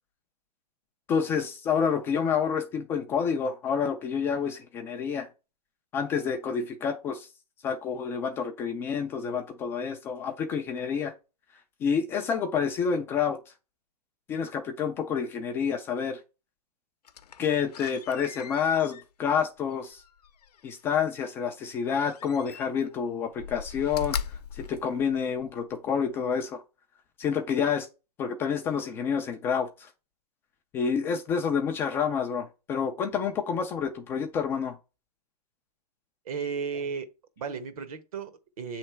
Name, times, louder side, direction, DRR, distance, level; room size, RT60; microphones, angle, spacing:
voice 1, 1.1-5.3 5.9-7.3 7.6-11.1 11.8-13.4 14.3-16.2 17.4-20.0 20.6-26.6 27.2-27.9 28.2-29.9 30.7-34.8, left 6 dB, 10° left, 0.3 m, -28 dB
Slam, 17.0-20.9 22.0-22.9 23.3-25.6 26.1-26.2, left 7 dB, 75° left, 0.7 m, -40 dB
voice 2, 36.2-38.8, right 6 dB, 65° right, 1.2 m, -35 dB
7.5 x 3.3 x 4.4 m
hypercardioid pair, 150°, 20 cm